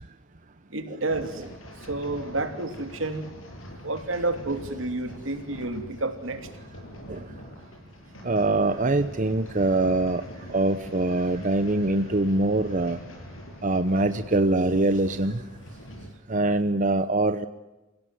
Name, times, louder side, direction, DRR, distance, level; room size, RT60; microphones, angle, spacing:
voice 1, 0.7-1.4 1.8-3.3 3.8-6.5, right 2 dB, 80° right, 7 dB, 3.1 m, -30 dB
sound 1, 1.1-16.1, equal, 90° left, 7.8 m, -43 dB
voice 2, 8.2-10.2 10.5-13.0 13.6-15.4 16.3-17.5, right 2 dB, 40° right, 10 dB, 0.9 m, -23 dB
27.5 x 17.0 x 9.5 m, 1.0 s
head